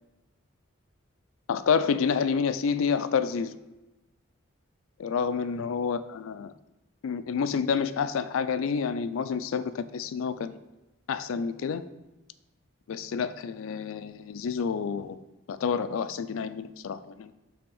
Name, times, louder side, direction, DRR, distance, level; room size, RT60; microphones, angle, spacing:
voice 1, 1.5-3.5 5.0-6.5 7.0-10.6 11.1-11.8 12.9-15.2 15.5-17.3, left 6 dB, 75° left, 12 dB, 0.3 m, -29 dB
5.6 x 3.5 x 5.5 m, 1.0 s
head